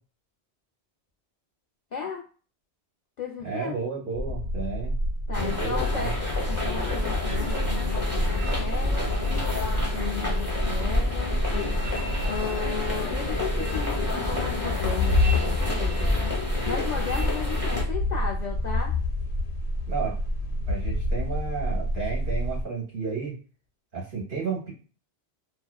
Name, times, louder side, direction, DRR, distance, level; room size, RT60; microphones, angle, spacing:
voice 1, 1.9-2.2 3.2-3.8 5.3-6.1 6.5-9.1 9.6-11.4 12.2-16.1 16.6-18.9, left 6 dB, 60° left, -1 dB, 0.5 m, -35 dB
voice 2, 3.4-4.9 5.3-6.1 19.9-20.2 20.7-23.3 23.9-24.7, right 5 dB, 50° right, -2 dB, 1.2 m, -32 dB
sound 1, 4.1-22.6, left 1 dB, 75° left, 0.8 m, -29 dB
sound 2, 5.3-17.8, left 2 dB, 15° right, 0.8 m, -28 dB
2.6 x 2.3 x 2.2 m, 0.38 s
omnidirectional pair, 1.2 m